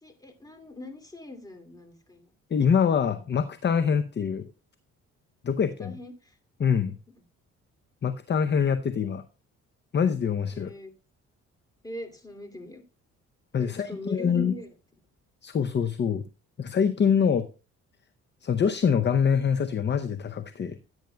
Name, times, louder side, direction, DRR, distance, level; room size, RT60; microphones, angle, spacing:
voice 1, 0.0-2.3 5.8-6.4 10.5-10.9 11.8-12.8 13.5-14.7, left 1 dB, 10° left, 6 dB, 2.4 m, -41 dB
voice 2, 2.5-4.5 5.4-6.0 6.6-7.0 8.0-9.2 9.9-10.7 13.5-14.5 15.4-16.3 16.6-17.5 18.4-20.8, left 7 dB, 35° left, 10 dB, 0.7 m, -25 dB
15.5 x 9.1 x 2.2 m, 0.33 s
cardioid pair, 90°, 30 cm